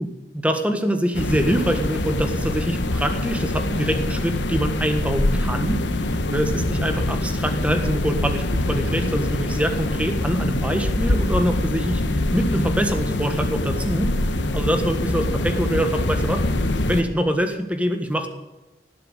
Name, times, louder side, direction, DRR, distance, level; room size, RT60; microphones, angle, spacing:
voice 1, 0.3-5.8 6.3-12.0 12.3-14.1 14.5-16.4 16.9-18.3, equal, 5° right, 6 dB, 1.5 m, -24 dB
sound 1, 1.1-17.0, left 1 dB, 90° left, 1.2 m, -24 dB
18.5 x 7.9 x 8.3 m, 1.0 s
head